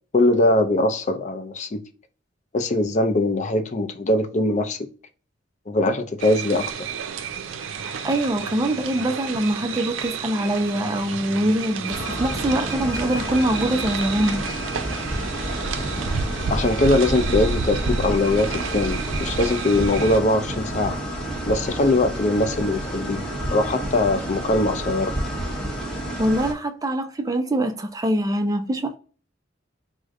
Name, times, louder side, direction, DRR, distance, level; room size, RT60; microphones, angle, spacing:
voice 1, 0.1-1.8 2.5-4.8 5.7-6.9 16.5-21.0 21.5-25.1, left 2 dB, 40° left, 0.5 m, -21 dB
sound 1, 6.2-20.2, right 5 dB, 85° right, 0.5 m, -30 dB
voice 2, 7.8-14.5 26.2-29.0, right 1 dB, 20° right, 0.4 m, -24 dB
sound 2, 11.9-26.5, right 1 dB, 5° left, 1.0 m, -30 dB
4.9 x 2.1 x 3.6 m
head